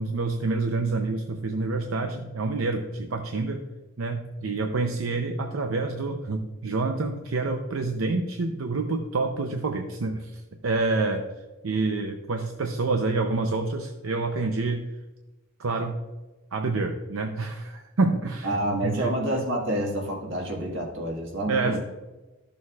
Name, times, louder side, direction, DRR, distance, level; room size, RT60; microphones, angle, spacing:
voice 1, 0.0-3.6 4.0-11.3 11.6-14.9 15.6-16.0 16.5-19.1 21.5-21.8, right 3 dB, 80° right, 5 dB, 0.6 m, -27 dB
voice 2, 18.4-21.8, right 1 dB, 60° right, 0 dB, 1.7 m, -28 dB
12.5 x 6.9 x 2.4 m, 1.1 s
head